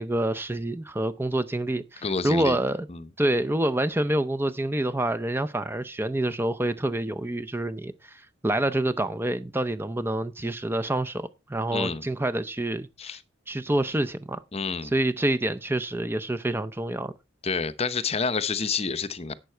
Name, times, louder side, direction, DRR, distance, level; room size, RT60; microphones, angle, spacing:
voice 1, 0.0-2.9 3.2-13.2 13.5-14.4 14.8-17.1, right 1 dB, 10° right, 0.6 m, -27 dB
voice 2, 2.0-2.6 2.9-3.1 11.7-12.0 13.0-13.2 14.5-14.9 17.4-19.3, left 5 dB, 30° left, 0.7 m, -28 dB
11.5 x 8.1 x 4.5 m
head